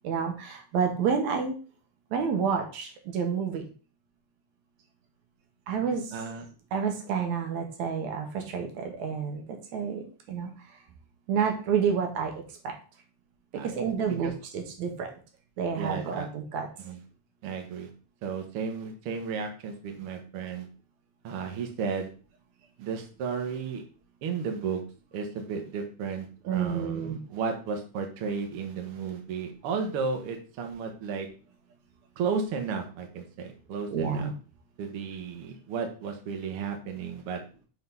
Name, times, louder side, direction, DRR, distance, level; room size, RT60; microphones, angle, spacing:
voice 1, 0.0-1.5 2.1-3.6 5.7-6.1 6.7-9.4 9.7-10.0 10.3-10.5 11.3-12.3 13.6-15.1 15.6-16.7 26.5-27.2 33.9-34.3, right 6 dB, 75° right, 4 dB, 2.4 m, -29 dB
voice 2, 6.1-6.5 13.5-13.8 14.1-14.3 15.8-16.3 16.8-17.0 17.4-17.9 18.2-20.7 21.2-22.1 22.8-23.8 24.2-24.8 25.1-31.3 32.2-34.3 34.8-37.4, right 5 dB, 60° right, 3 dB, 1.7 m, -33 dB
6.3 x 3.7 x 5.4 m, 0.37 s
omnidirectional pair, 3.4 m